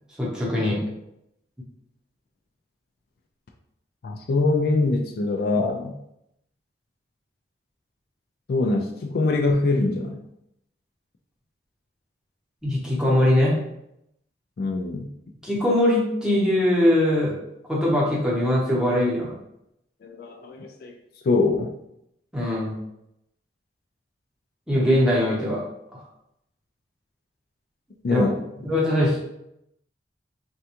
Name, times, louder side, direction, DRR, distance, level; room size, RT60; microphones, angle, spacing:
voice 1, 0.2-0.8 12.6-13.6 15.4-17.3 17.7-19.3 22.3-22.8 24.7-25.6 25.9-26.0 28.1-28.2 28.6-29.2, left 1 dB, 5° right, -6 dB, 0.8 m, -21 dB
voice 2, 4.0-5.9 8.5-10.2 14.6-15.1 20.0-20.9 21.2-21.7 28.0-28.5, left 3 dB, 55° left, 3 dB, 0.3 m, -23 dB
3.4 x 2.3 x 2.8 m, 0.81 s
head